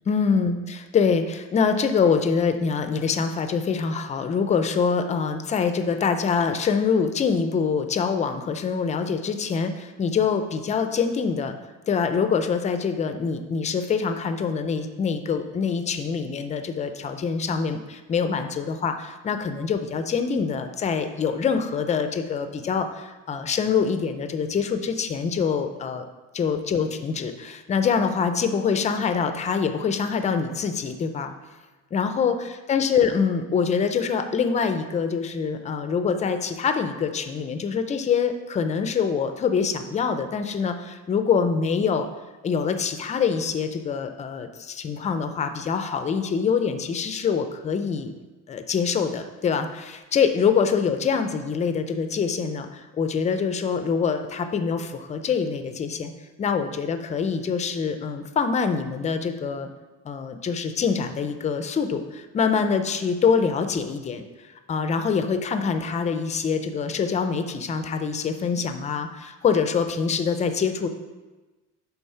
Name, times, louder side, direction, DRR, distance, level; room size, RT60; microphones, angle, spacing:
voice 1, 0.1-11.6 11.9-26.0 26.3-31.3 31.9-32.3 32.7-42.1 42.4-48.1 48.5-56.1 56.4-59.7 60.0-64.2 64.7-70.9, left 6 dB, 20° left, 8 dB, 0.4 m, -25 dB
10.0 x 3.9 x 5.6 m, 1.2 s
cardioid pair, 180°, 34 cm